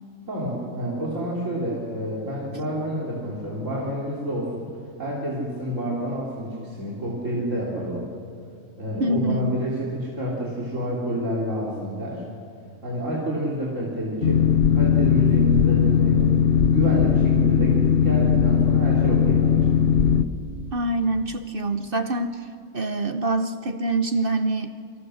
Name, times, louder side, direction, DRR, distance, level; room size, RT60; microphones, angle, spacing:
voice 1, 0.3-4.7 5.0-8.0 8.8-12.2 12.8-16.3 16.7-19.8, equal, 65° right, -5 dB, 3.8 m, -28 dB
voice 2, 9.0-9.5 20.7-22.5 22.7-24.7, right 2 dB, 45° right, 9 dB, 1.1 m, -25 dB
Boat Water vehicle, 14.2-20.2, left 7 dB, 50° left, 1.1 m, -19 dB
28.0 x 26.0 x 6.5 m, 2.3 s
omnidirectional pair, 1.4 m